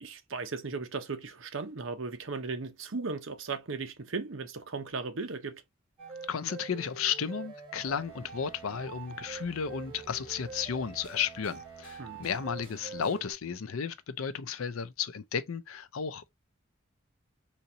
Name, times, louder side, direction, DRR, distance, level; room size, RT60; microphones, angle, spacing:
voice 1, 0.0-5.6 12.0-12.2, right 4 dB, 65° right, 0.8 m, -36 dB
sound 1, 6.0-13.3, right 5 dB, 25° right, 2.2 m, -45 dB
voice 2, 6.3-16.3, left 7 dB, 85° left, 0.5 m, -33 dB
3.9 x 2.9 x 2.7 m
head